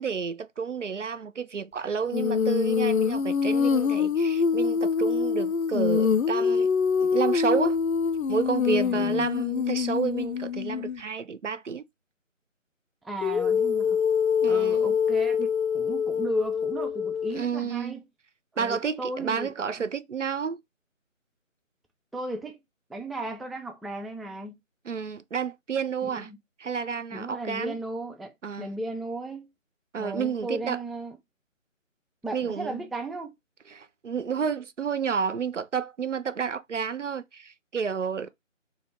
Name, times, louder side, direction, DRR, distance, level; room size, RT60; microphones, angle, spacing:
voice 1, 0.0-6.7 7.0-7.8 8.3-11.8 14.4-15.0 17.3-18.0 18.6-20.6 24.8-26.3 26.6-27.8 28.4-28.7 29.9-30.8 32.3-32.8 33.7-38.3, right 6 dB, 65° right, 0.5 m, -30 dB
Female singing, 2.1-11.0 13.2-17.4, left 6 dB, 90° left, 0.5 m, -25 dB
voice 2, 8.7-9.3 13.0-14.0 14.5-15.5 15.7-18.0 18.5-19.5 22.1-22.6 22.9-24.6 26.0-26.4 27.1-28.3 28.6-29.5 30.0-31.2 32.2-33.3, right 1 dB, ahead, 0.3 m, -35 dB
3.2 x 2.9 x 3.5 m
figure-of-eight pair, 160°, 40 cm